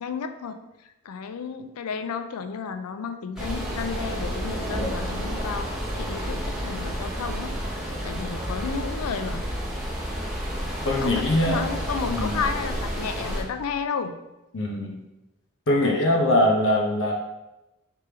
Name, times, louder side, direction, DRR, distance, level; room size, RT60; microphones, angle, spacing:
voice 1, 0.0-7.5 8.0-9.5 11.0-14.2 15.8-16.1, left 5 dB, 85° left, 9 dB, 0.4 m, -32 dB
sound 1, 3.4-13.4, equal, ahead, 0.8 m, -30 dB
voice 2, 10.8-11.6 12.1-12.4 14.5-15.0 15.7-17.1, left 1 dB, 60° left, 0 dB, 0.8 m, -22 dB
3.5 x 3.3 x 4.3 m, 0.97 s
head